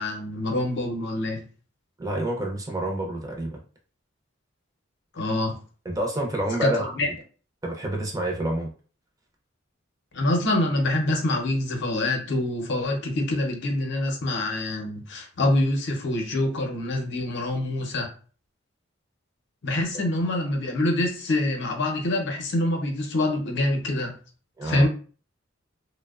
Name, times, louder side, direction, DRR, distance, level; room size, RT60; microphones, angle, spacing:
voice 1, 0.0-1.4 5.1-5.6 6.6-7.1 10.1-18.1 19.6-24.1 24.6-24.9, left 1 dB, 65° left, 0.6 m, -25 dB
voice 2, 2.0-3.6 5.8-6.9 7.6-8.7 19.9-20.0 24.6-24.9, right 1 dB, 20° right, 0.5 m, -28 dB
2.7 x 2.1 x 2.3 m
head